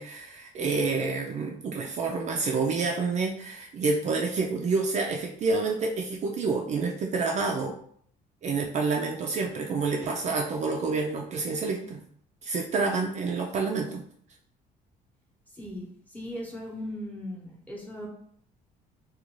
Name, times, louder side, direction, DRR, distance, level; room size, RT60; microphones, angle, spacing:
voice 1, 0.0-7.7 8.4-12.0 12.4-14.0, right 4 dB, 45° right, 1 dB, 0.4 m, -28 dB
voice 2, 15.5-18.1, left 1 dB, 10° left, -3 dB, 0.9 m, -38 dB
2.5 x 2.3 x 3.0 m, 0.63 s
cardioid pair, 110°, 17 cm